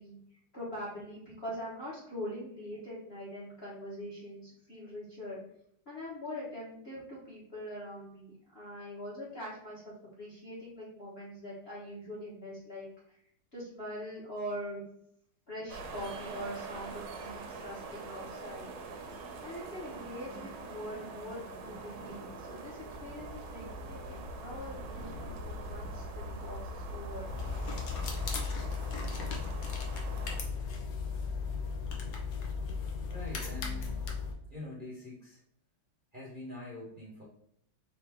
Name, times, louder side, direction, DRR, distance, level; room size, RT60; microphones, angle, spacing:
voice 1, 0.0-5.4 5.8-13.2 13.5-14.8 15.5-18.7 19.4-27.3, equal, 35° left, -7 dB, 1.4 m, -43 dB
sound 1, 15.7-30.4, right 2 dB, 85° right, 1.5 m, -43 dB
sound 2, 27.3-34.3, left 5 dB, 65° left, 1.1 m, -36 dB
voice 2, 33.1-34.0 34.5-35.4 36.1-37.2, left 1 dB, 30° right, -8 dB, 1.1 m, -44 dB
4.2 x 2.9 x 3.5 m, 0.69 s
omnidirectional pair, 2.2 m